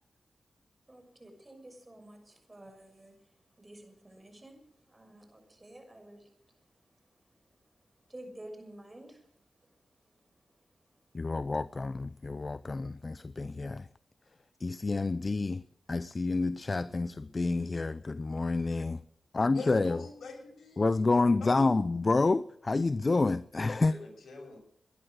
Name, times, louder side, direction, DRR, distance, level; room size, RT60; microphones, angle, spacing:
voice 1, 0.9-3.1 3.6-6.3 8.1-9.2, right 1 dB, 30° right, 6.4 m, -50 dB
voice 2, 11.1-13.9 14.6-15.6 15.9-19.0 19.3-20.0 20.8-23.9, left 3 dB, 45° left, 0.6 m, -29 dB
voice 3, 19.5-20.8 21.4-21.6 23.9-24.6, left 3 dB, 75° left, 6.8 m, -44 dB
19.0 x 11.0 x 6.4 m
cardioid pair, 45°, 0 cm